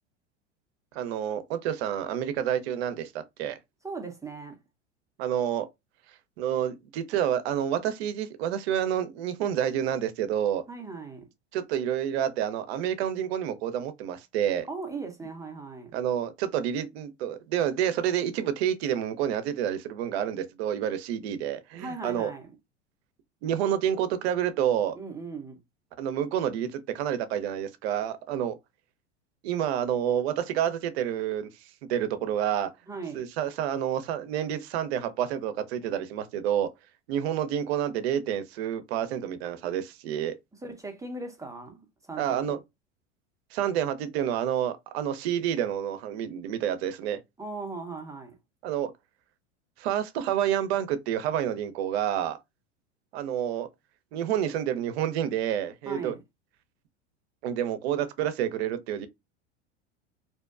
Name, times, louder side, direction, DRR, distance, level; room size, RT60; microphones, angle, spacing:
voice 1, 0.9-3.1 3.4-3.6 5.2-5.7 6.4-10.6 11.5-14.7 15.9-22.3 23.4-25.0 26.0-28.6 29.4-31.5 31.9-32.7 33.1-36.7 37.1-40.3 42.2-42.6 43.5-47.2 48.6-48.9 49.8-52.4 53.1-53.7 54.1-56.1 57.4-59.1, right 10 dB, 65° right, 0.6 m, -29 dB
voice 2, 3.8-4.6 10.7-11.3 14.7-15.9 21.7-22.5 24.9-25.6 32.9-33.3 40.6-42.5 47.4-48.4 55.9-56.2, right 3 dB, 10° right, 0.6 m, -38 dB
2.6 x 2.1 x 2.3 m
hypercardioid pair, 90°, 35 cm